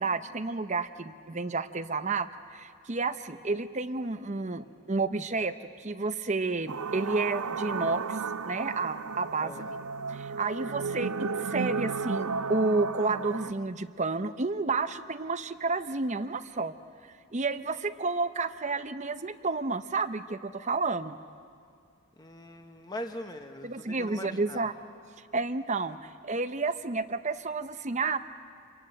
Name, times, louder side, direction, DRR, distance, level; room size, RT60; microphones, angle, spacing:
voice 1, 0.0-9.5 10.1-16.7 17.3-21.2 23.6-24.7 25.3-28.2, right 3 dB, 30° right, 11 dB, 0.7 m, -31 dB
sound 1, 6.7-13.5, right 5 dB, 80° right, 0.7 m, -33 dB
voice 2, 9.4-9.8 22.2-24.7, left 1 dB, 20° left, 5 dB, 1.1 m, -41 dB
28.0 x 23.5 x 8.9 m, 2.2 s
head